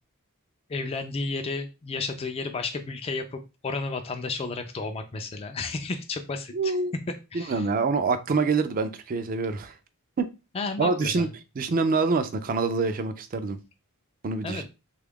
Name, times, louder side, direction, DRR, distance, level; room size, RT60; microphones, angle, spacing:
voice 1, 0.7-6.8 7.3-7.6 10.5-11.3 14.4-14.7, left 3 dB, 25° left, 6 dB, 0.3 m, -32 dB
voice 2, 6.5-6.9 7.3-9.8 10.2-10.3 10.8-11.3 11.6-13.6 14.2-14.7, right 4 dB, 40° right, 10 dB, 0.4 m, -26 dB
3.4 x 2.3 x 3.5 m, 0.28 s
head